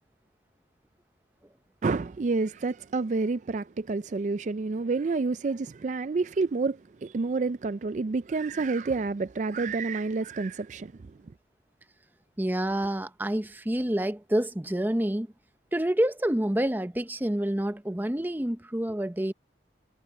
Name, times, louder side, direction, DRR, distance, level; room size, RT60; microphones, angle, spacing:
voice 1, 1.8-11.1, right 3 dB, 45° right, 0.4 m, -29 dB
voice 2, 12.4-15.3 15.7-19.3, right 1 dB, 10° right, 0.7 m, -28 dB
head